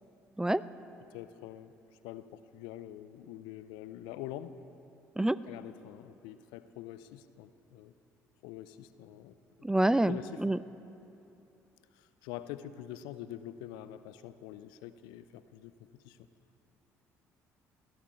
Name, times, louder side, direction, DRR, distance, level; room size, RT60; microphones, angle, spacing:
voice 1, 1.1-1.7 2.0-4.5 5.5-7.9 8.4-9.7 10.1-10.4 12.0-16.2, left 12 dB, 65° left, 13 dB, 0.6 m, -45 dB
voice 2, 9.6-10.6, right 1 dB, 10° right, 17 dB, 0.4 m, -27 dB
20.0 x 14.0 x 4.4 m, 2.8 s
figure-of-eight pair, 50°, 8 cm